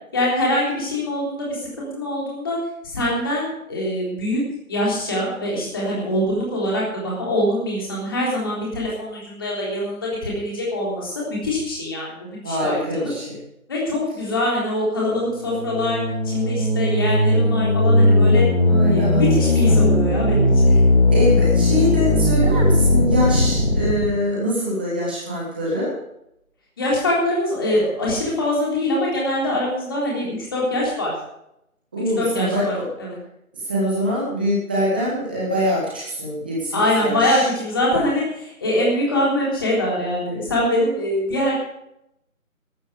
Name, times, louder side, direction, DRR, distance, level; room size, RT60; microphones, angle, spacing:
voice 1, 0.1-2.6 2.9-4.4 4.7-13.1 13.7-16.0 16.3-18.4 18.9-20.5 26.8-31.1 32.2-33.2 36.7-41.6, left 1 dB, 15° left, -4 dB, 3.6 m, -23 dB
voice 2, 12.4-13.4 18.6-19.2 19.6-20.0 21.1-25.9 31.9-32.9 33.6-37.5, equal, 5° right, -6 dB, 1.8 m, -24 dB
sound 1, 15.3-24.0, left 1 dB, 50° left, 4.6 m, -17 dB
14.5 x 13.0 x 5.1 m, 0.79 s
figure-of-eight pair, 165°, 43 cm